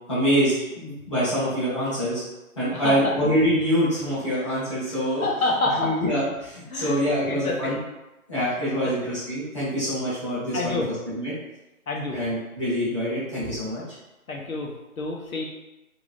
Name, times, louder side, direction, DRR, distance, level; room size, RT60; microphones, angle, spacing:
voice 1, 0.1-2.2 2.6-5.2 5.8-7.8 8.3-11.3 12.1-13.8, equal, 20° left, -12 dB, 0.8 m, -25 dB
voice 2, 2.7-3.1 4.9-5.9 6.7-7.7 8.8-8.9 10.5-10.9 11.9-12.2 14.3-15.4, left 2 dB, 75° left, -1 dB, 0.8 m, -28 dB
2.7 x 2.5 x 3.3 m, 1.0 s
figure-of-eight pair, 170°, 43 cm